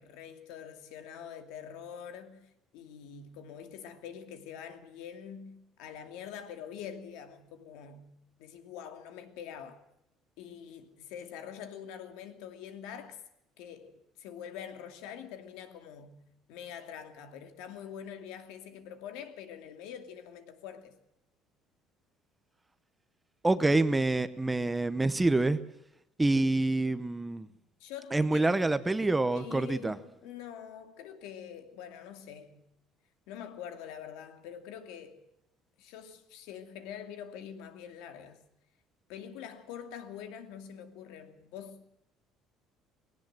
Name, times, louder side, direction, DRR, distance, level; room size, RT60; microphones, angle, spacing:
voice 1, 0.0-9.8 10.4-13.2 13.6-16.2 16.5-21.0 27.8-28.6 29.3-32.7 33.3-35.2 35.8-38.4 39.1-41.8, left 8 dB, 85° left, 2.6 m, -45 dB
voice 2, 23.4-25.6 26.2-27.5 28.1-29.9, right 2 dB, 10° right, 0.8 m, -26 dB
19.5 x 18.0 x 7.6 m
cardioid pair, 170°, 0 cm